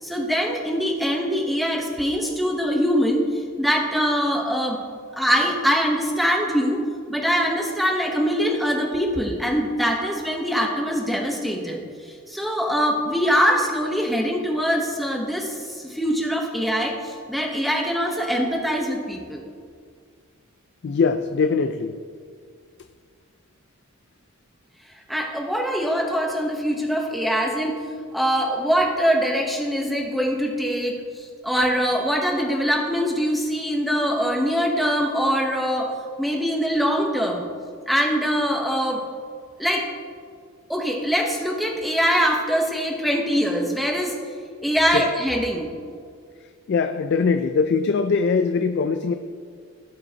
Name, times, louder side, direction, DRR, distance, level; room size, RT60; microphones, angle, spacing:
voice 1, 0.0-4.8 5.2-6.8 7.1-19.4 25.1-27.8 28.1-35.9 36.2-37.5 37.9-39.0 39.6-39.9 40.7-44.2 44.6-45.7, equal, ahead, 0 dB, 0.9 m, -23 dB
voice 2, 20.8-22.0 44.5-45.1 46.4-49.1, left 5 dB, 50° left, 8 dB, 0.3 m, -22 dB
16.0 x 5.4 x 2.8 m, 2.1 s
head